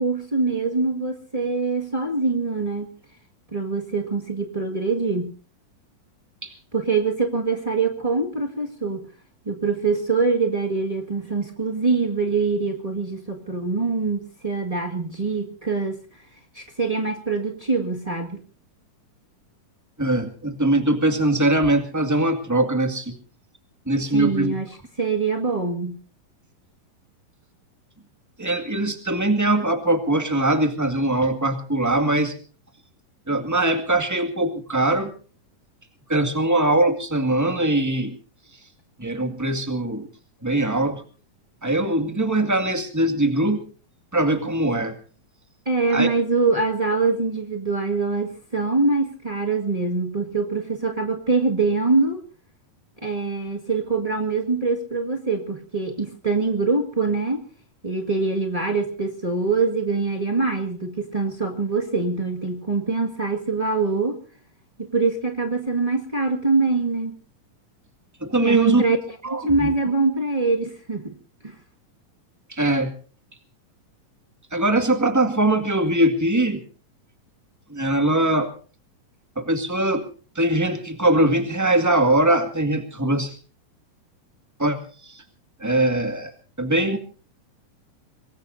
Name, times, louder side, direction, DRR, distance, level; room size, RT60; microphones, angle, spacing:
voice 1, 0.0-2.9 3.5-5.3 6.7-9.1 9.4-16.0 16.5-18.4 24.1-24.7 25.0-26.0 45.6-52.2 53.0-57.4 57.8-64.2 64.8-67.1 68.4-69.0 69.4-71.1 71.4-71.5, right 4 dB, 35° right, 2 dB, 0.5 m, -24 dB
voice 2, 20.0-23.1 23.8-24.5 28.4-32.3 33.3-35.1 36.1-38.2 39.0-40.1 40.4-41.0 41.6-43.6 44.1-44.9 45.9-46.1 68.2-68.8 69.2-69.7 72.5-72.9 74.5-76.6 77.7-78.5 79.3-80.0 80.3-83.3 84.6-84.8 85.0-85.2 85.6-86.3 86.6-87.0, right 1 dB, 10° right, 6 dB, 1.0 m, -21 dB
25.0 x 21.0 x 2.7 m, 0.39 s
omnidirectional pair, 4.0 m